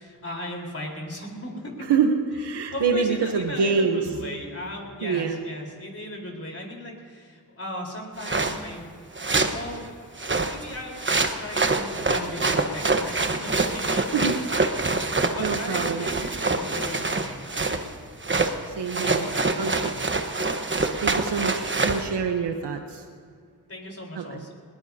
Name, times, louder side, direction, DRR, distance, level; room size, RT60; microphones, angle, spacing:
voice 1, 0.0-1.9 2.7-9.0 9.5-10.1 10.4-11.0 11.3-17.9 19.0-20.4 23.7-24.5, left 1 dB, 35° left, -1 dB, 4.1 m, -37 dB
voice 2, 1.9-4.0 5.0-5.4 14.1-14.4 15.4-16.1 18.7-19.2 19.6-19.7 21.0-23.0 24.2-24.4, right 5 dB, 90° right, 5 dB, 1.0 m, -25 dB
sound 1, 8.2-8.6 9.2-9.6 10.2-17.9 18.2-18.6 18.9-22.1, right 3 dB, 30° right, 1.1 m, -25 dB
21.0 x 19.5 x 2.8 m, 2.1 s
cardioid pair, 65°, 40 cm